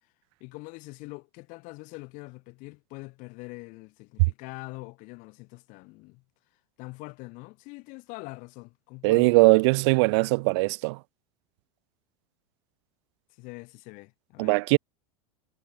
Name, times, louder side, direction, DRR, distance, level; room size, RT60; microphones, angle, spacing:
voice 1, 0.4-6.2 6.8-9.4 13.4-14.6, left 26 dB, 55° left, 6.8 m, -43 dB
voice 2, 9.0-11.0 14.4-14.8, right 27 dB, 65° right, 0.6 m, -20 dB
hypercardioid pair, 105°, 15 cm